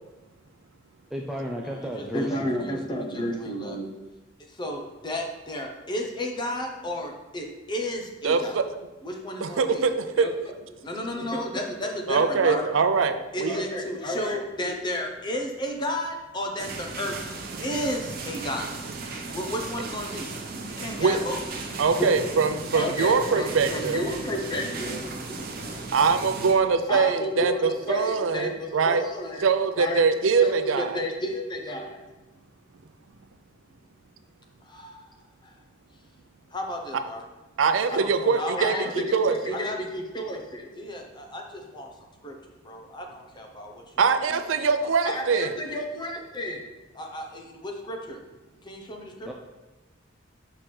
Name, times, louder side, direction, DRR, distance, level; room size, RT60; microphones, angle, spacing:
voice 1, 1.1-2.8 49.2-49.3, equal, ahead, -1 dB, 0.4 m, -34 dB
voice 2, 1.6-3.9 4.5-8.6 9.0-9.8 10.2-10.3 10.8-12.7 13.3-17.2 17.6-18.7 19.3-20.3 20.6-21.4 22.0-22.1 22.7-25.0 26.9-29.5 29.7-30.0 30.4-32.0 34.6-35.1 35.4-35.5 36.5-37.3 37.9-38.1 38.4-41.9 42.2-42.3 42.6-43.8 44.8-46.6 46.9-48.2 48.6-49.3, left 1 dB, 25° left, 1 dB, 0.8 m, -32 dB
voice 3, 8.2-8.6 9.4-10.3 12.1-13.6 21.0-21.2 21.8-24.0 25.9-29.0 29.4-30.9 37.6-39.6 44.0-45.5, right 5 dB, 85° right, 9 dB, 0.5 m, -23 dB
sound 1, 16.6-26.5, right 3 dB, 50° right, 0.8 m, -36 dB
6.0 x 5.7 x 3.2 m, 1.2 s
head